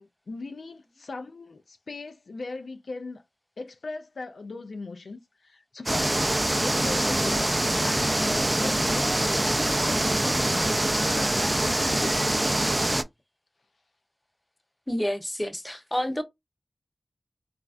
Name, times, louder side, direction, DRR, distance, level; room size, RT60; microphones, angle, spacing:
voice 1, 0.0-3.2 3.6-13.0, left 3 dB, 80° left, 0.3 m, -39 dB
sound 1, 5.9-13.0, right 1 dB, 25° right, 0.3 m, -24 dB
sound 2, 7.3-12.3, left 2 dB, 55° left, 0.8 m, -44 dB
voice 2, 14.9-16.2, equal, 15° left, 0.6 m, -29 dB
3.1 x 2.4 x 2.4 m
cardioid pair, 45°, 0 cm